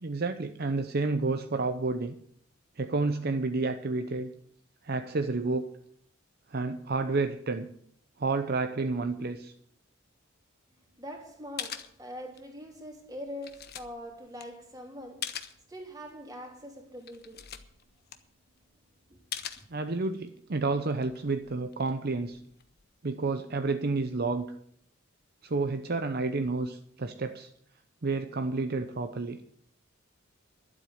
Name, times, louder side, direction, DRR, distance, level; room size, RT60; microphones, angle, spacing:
voice 1, 0.0-2.1 2.8-4.3 4.8-5.7 6.5-7.7 8.2-9.5 19.7-22.4 23.0-24.5 25.4-27.5 28.0-29.4, right 3 dB, 50° right, 0.8 m, -30 dB
voice 2, 10.9-15.4 15.7-17.5 19.1-19.2, equal, 20° right, 3.3 m, -43 dB
sound 1, 11.2-11.3 11.6-12.6 12.9-15.7 16.1-16.2 16.6-16.7 17.0-18.7 19.3-20.3 20.7-23.0, left 9 dB, 50° left, 1.2 m, -42 dB
12.0 x 8.0 x 9.4 m
head